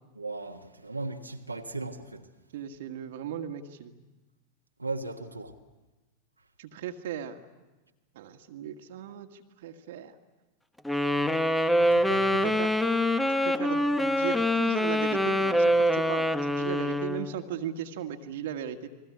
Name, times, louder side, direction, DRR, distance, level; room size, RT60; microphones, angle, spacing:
voice 1, 0.1-2.3 4.8-5.5 11.8-12.6 13.1-13.3, right 3 dB, 85° right, 1.5 m, -37 dB
voice 2, 2.5-3.9 6.6-7.4 8.1-10.2 12.4-12.7 13.4-18.9, right 9 dB, 55° right, 1.7 m, -37 dB
Wind instrument woodwind instrument, 10.9-17.3, equal, 5° left, 1.3 m, -25 dB
30.0 x 22.0 x 8.5 m
figure-of-eight pair, 90°, 0 cm